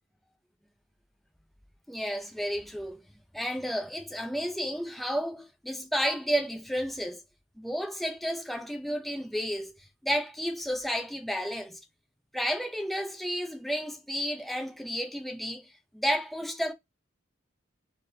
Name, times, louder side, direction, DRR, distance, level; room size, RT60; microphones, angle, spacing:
voice 1, 1.9-3.0 3.3-7.2 7.6-9.7 10.0-11.8 12.3-15.7 15.9-16.7, equal, ahead, 0.7 m, -31 dB
4.2 x 3.3 x 2.8 m
head